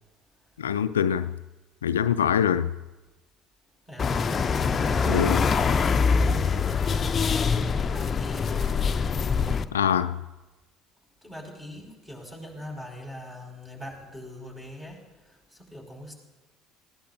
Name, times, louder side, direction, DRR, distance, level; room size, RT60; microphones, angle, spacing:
voice 1, 0.6-1.3 1.8-2.7 5.1-5.4 9.7-10.1, left 8 dB, 85° left, 0.3 m, -24 dB
voice 2, 3.9-4.2 4.6-5.5 5.9-8.7 11.2-16.1, equal, 15° right, 5.1 m, -41 dB
sound 1, 4.0-9.7, left 5 dB, 35° left, 0.6 m, -24 dB
19.5 x 16.0 x 2.6 m
hypercardioid pair, 60°, 0 cm